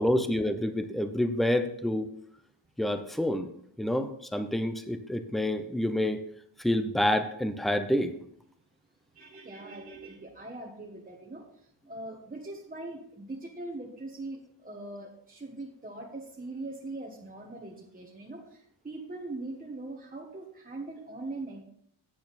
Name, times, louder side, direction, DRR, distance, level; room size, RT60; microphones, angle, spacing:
voice 1, 0.0-2.1 2.8-3.5 3.8-6.2 6.6-8.1, left 1 dB, ahead, 9 dB, 0.6 m, -28 dB
voice 2, 9.1-21.6, right 2 dB, 20° right, -3 dB, 1.3 m, -41 dB
8.9 x 8.2 x 4.1 m, 0.69 s
wide cardioid pair, 145°, 47 cm